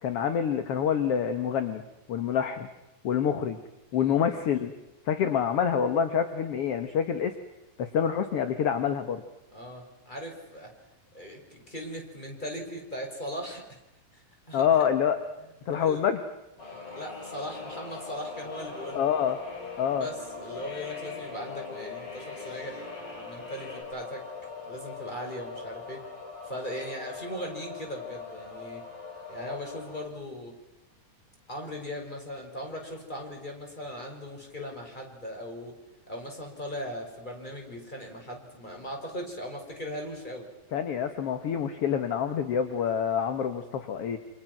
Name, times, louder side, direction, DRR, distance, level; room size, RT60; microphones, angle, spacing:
voice 1, 0.0-1.8 2.1-2.7 3.0-3.6 3.9-4.7 5.1-7.3 7.8-9.2 14.5-15.2 15.7-16.2 19.0-19.4 19.8-20.1 40.7-44.2, left 8 dB, 55° left, 9 dB, 1.9 m, -26 dB
voice 2, 9.5-10.7 11.1-13.6 14.1-14.6 15.4-16.1 16.7-19.0 20.0-24.2 24.6-26.0 26.4-28.8 29.3-30.6 31.5-35.8 36.1-40.5, equal, 10° left, 2 dB, 5.4 m, -39 dB
sound 1, 16.6-23.8, left 3 dB, 90° left, 8.6 m, -44 dB
sound 2, 16.6-30.1, left 5 dB, 30° left, 4.3 m, -42 dB
28.5 x 27.0 x 6.1 m, 0.91 s
omnidirectional pair, 4.0 m